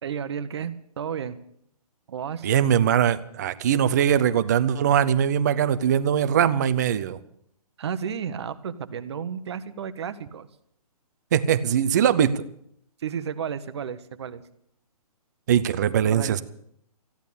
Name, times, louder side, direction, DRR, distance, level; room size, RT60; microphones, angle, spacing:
voice 1, 0.0-1.4 2.1-2.5 7.8-10.5 13.0-14.4 16.0-16.4, right 7 dB, 45° right, 13 dB, 0.9 m, -32 dB
voice 2, 2.4-7.2 11.3-12.4 15.5-16.4, right 9 dB, 30° right, 12 dB, 0.5 m, -21 dB
14.5 x 10.5 x 8.5 m, 0.70 s
hypercardioid pair, 165°, 20 cm